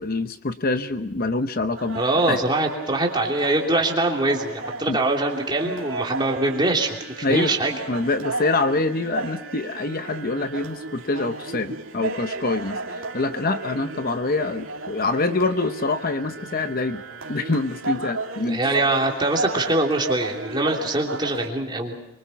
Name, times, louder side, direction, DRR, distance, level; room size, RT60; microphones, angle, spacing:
voice 1, 0.0-2.0 2.3-2.4 4.9-5.0 7.2-7.5 7.9-17.0 17.3-18.6, left 3 dB, 40° left, 9 dB, 0.8 m, -25 dB
sound 1, 1.8-21.5, right 3 dB, 60° right, 2.9 m, -34 dB
voice 2, 1.9-7.8 18.5-21.9, right 2 dB, 20° right, 0 dB, 3.1 m, -23 dB
24.5 x 24.0 x 5.9 m, 0.90 s
head